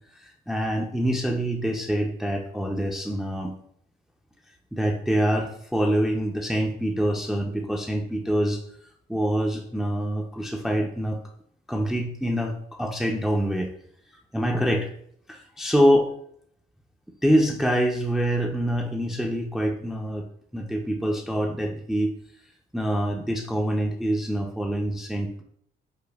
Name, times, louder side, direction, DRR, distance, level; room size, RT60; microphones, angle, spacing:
voice 1, 0.2-3.6 4.7-8.6 9.1-11.2 11.7-13.7 14.3-14.9 15.3-16.1 17.2-20.2 20.5-22.1 22.7-25.4, equal, ahead, 1 dB, 0.4 m, -25 dB
5.0 x 2.0 x 2.3 m, 0.66 s
cardioid pair, 90°, 20 cm